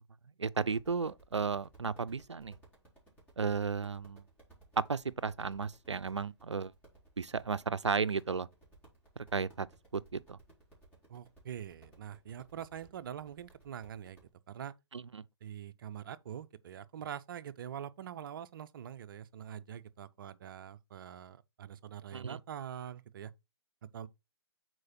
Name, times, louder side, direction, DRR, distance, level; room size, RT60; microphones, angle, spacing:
voice 1, 0.4-2.5 3.4-4.2 4.9-6.7 7.2-8.5 9.2-9.7 9.9-10.4 14.9-15.2 22.1-22.4, right 5 dB, 90° right, 0.5 m, -34 dB
sound 1, 0.6-14.3, right 2 dB, 10° left, 3.9 m, -61 dB
voice 2, 11.1-14.2 14.5-14.7 15.4-23.3 23.9-24.1, right 9 dB, 50° right, 0.6 m, -44 dB
6.4 x 4.5 x 4.2 m
figure-of-eight pair, 130°, 14 cm